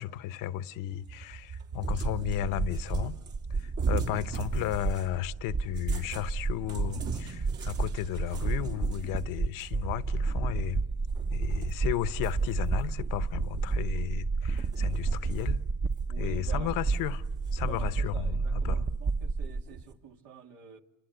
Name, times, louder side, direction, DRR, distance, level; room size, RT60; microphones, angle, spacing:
voice 1, 0.0-3.2 3.6-10.8 11.3-15.6 16.2-17.2 17.5-18.9, left 13 dB, 85° left, 1.0 m, -34 dB
Cat, 0.9-5.2 5.7-11.9 12.2-14.1 14.5-15.6 15.9-16.0 16.6-18.2 18.8-19.9, right 5 dB, 65° right, 3.5 m, -40 dB
sound 1, 1.9-19.6, right 4 dB, 35° right, 1.0 m, -31 dB
voice 2, 16.1-16.8 17.6-20.8, right 8 dB, 85° right, 2.4 m, -48 dB
29.5 x 25.5 x 8.0 m
cardioid pair, 120°, 32 cm